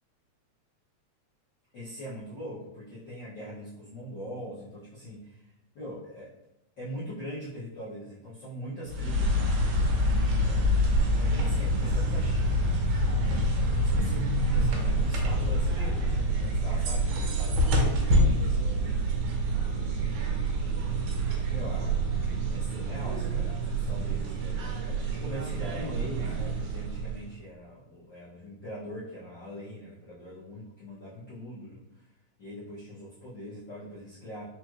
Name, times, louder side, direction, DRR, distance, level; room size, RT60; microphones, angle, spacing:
voice 1, 1.7-6.3 6.8-9.6 10.4-12.8 13.1-13.2 13.5-18.8 19.6-20.3 21.5-22.0 22.5-32.1 32.4-34.4, equal, 75° left, -10 dB, 1.0 m, -42 dB
sound 1, 8.9-27.3, right 1 dB, 90° right, 2.2 m, -26 dB
4.9 x 2.9 x 2.4 m, 0.87 s
omnidirectional pair, 3.4 m